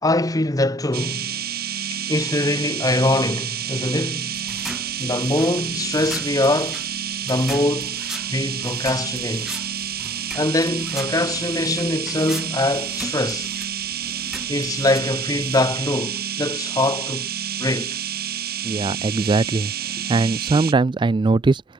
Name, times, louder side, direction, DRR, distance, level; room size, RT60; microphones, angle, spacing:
voice 1, 0.0-1.3 2.1-4.4 5.0-6.9 7.2-8.0 8.3-9.5 10.3-13.5 14.5-17.3 17.6-18.0, left 2 dB, 20° left, 1.3 m, -23 dB
sound 1, 0.9-20.7, right 9 dB, 55° right, 2.7 m, -29 dB
sound 2, 4.3-15.8, equal, 5° right, 6.5 m, -39 dB
voice 2, 18.6-19.7 20.1-21.6, right 3 dB, 25° right, 0.3 m, -20 dB
head